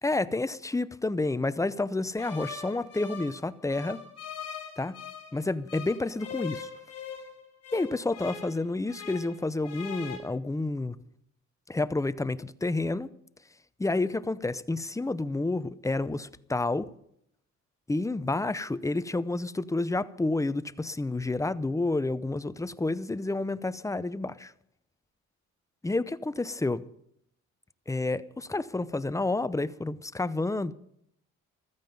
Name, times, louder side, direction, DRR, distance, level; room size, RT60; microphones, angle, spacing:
voice 1, 0.0-4.0 4.8-4.9 5.3-6.7 7.7-11.0 11.7-13.1 13.8-16.9 17.9-24.5 25.8-26.8 27.9-30.7, left 2 dB, 10° left, 0.7 m, -29 dB
sound 1, 2.2-5.4 5.7-9.4 9.6-10.2, left 6 dB, 55° left, 5.2 m, -41 dB
15.0 x 13.5 x 5.3 m
cardioid pair, 90°, 30 cm